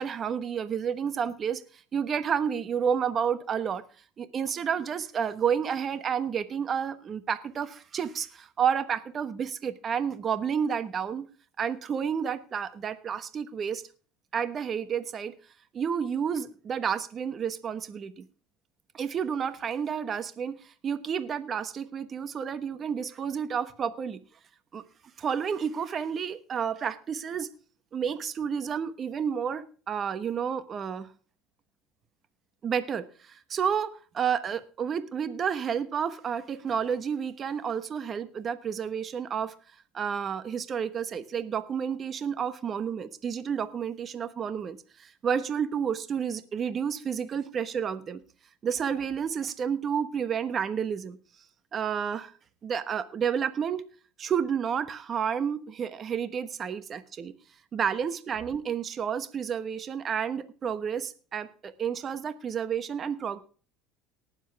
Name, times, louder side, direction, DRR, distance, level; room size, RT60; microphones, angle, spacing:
voice 1, 0.0-1.6 1.9-3.8 4.2-11.3 11.6-13.8 14.3-15.3 15.7-18.2 18.9-24.2 24.7-24.8 25.2-27.5 27.9-31.1 32.6-39.5 39.9-48.2 48.6-51.2 51.7-52.3 52.6-53.8 54.2-57.3 57.7-63.4, right 7 dB, 40° right, 12 dB, 1.1 m, -30 dB
19.0 x 7.3 x 3.4 m, 0.38 s
supercardioid pair, 95°, 0 cm